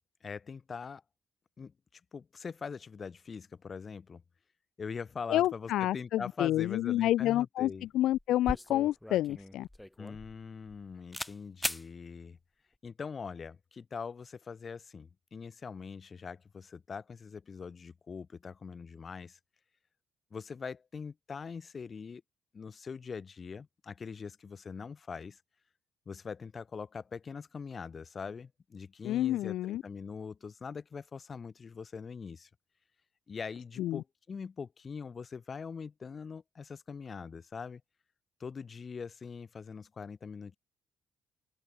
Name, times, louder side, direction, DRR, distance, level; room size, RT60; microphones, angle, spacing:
voice 1, 0.2-1.0 1.6-4.2 4.8-7.9 10.0-12.4 12.8-19.4 20.3-22.2 22.5-25.4 26.1-32.5 33.3-37.8 38.4-40.6, left 5 dB, 40° left, 6.1 m, -42 dB
voice 2, 5.3-9.7 29.0-29.8 33.8-34.0, left 14 dB, 85° left, 0.7 m, -29 dB
sound 1, 7.7-7.9 8.1-10.8 11.1-11.3 11.6-11.8, left 1 dB, 10° left, 4.2 m, -38 dB
cardioid pair, 90°, 0 cm